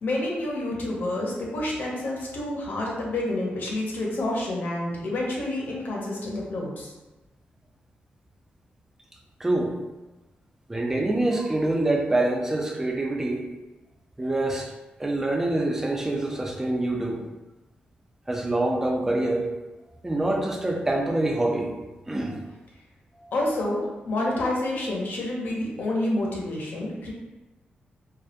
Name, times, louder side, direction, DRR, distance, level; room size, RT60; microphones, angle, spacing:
voice 1, 0.0-6.9 23.3-27.1, left 1 dB, 65° left, -2 dB, 0.6 m, -28 dB
voice 2, 9.4-9.8 10.7-13.5 14.2-14.7 15.0-17.2 18.3-19.5 20.0-21.7 22.1-22.4 23.2-23.3, right 2 dB, 15° right, 1 dB, 0.3 m, -25 dB
2.2 x 2.1 x 2.7 m, 1.1 s
wide cardioid pair, 130°, 3 cm